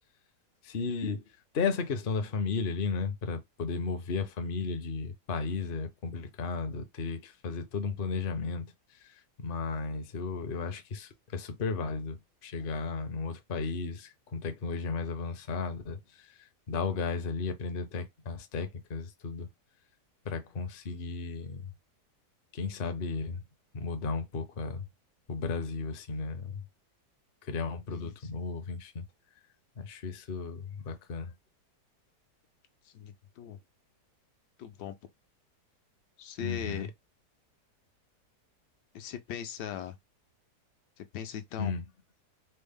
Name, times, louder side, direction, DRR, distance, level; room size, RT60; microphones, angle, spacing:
voice 1, 0.6-1.2 1.5-8.6 9.4-12.2 12.4-16.0 16.7-19.5 20.3-21.7 22.5-23.4 23.7-24.8 25.3-26.6 27.5-29.0 29.8-31.3 36.4-36.9 41.6-41.8, left 4 dB, 55° left, 0.6 m, -34 dB
voice 2, 27.9-28.3 32.8-33.6 34.6-34.9 36.2-36.9 38.9-39.9 41.0-41.8, left 9 dB, 80° left, 1.2 m, -39 dB
4.3 x 2.0 x 3.5 m
omnidirectional pair, 1.8 m